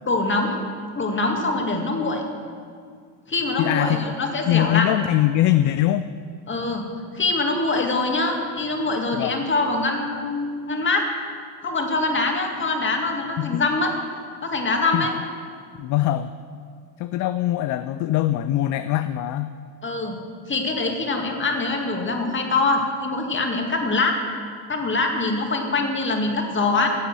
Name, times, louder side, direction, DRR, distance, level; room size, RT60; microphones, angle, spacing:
voice 1, 0.1-0.6 0.9-2.2 3.3-4.9 6.5-6.9 7.1-11.0 11.6-13.9 14.4-15.1 19.8-20.2 20.5-24.2 24.7-26.9, left 3 dB, 25° left, 2 dB, 2.1 m, -23 dB
voice 2, 3.6-4.2 4.5-6.1 9.1-9.4 13.4-13.6 14.9-15.1 15.8-16.3 17.0-19.5, left 13 dB, 40° left, 12 dB, 0.4 m, -22 dB
11.0 x 7.2 x 7.6 m, 2.2 s
hypercardioid pair, 85°, 47 cm